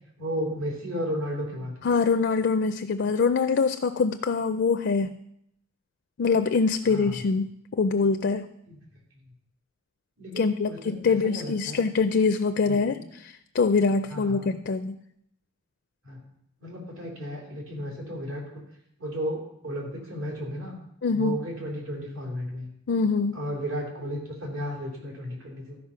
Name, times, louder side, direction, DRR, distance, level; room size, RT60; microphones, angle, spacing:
voice 1, 0.2-1.8 6.9-7.2 8.7-8.8 10.2-11.8 12.6-13.0 14.1-14.5 16.0-16.2 16.6-18.6 19.0-20.7 21.1-22.7 23.3-25.8, equal, 75° right, -2 dB, 3.3 m, -34 dB
voice 2, 1.8-5.1 6.2-8.5 10.4-15.0 21.0-21.4 22.9-23.4, left 4 dB, 55° left, 9 dB, 0.4 m, -24 dB
13.0 x 5.3 x 5.7 m, 0.76 s
head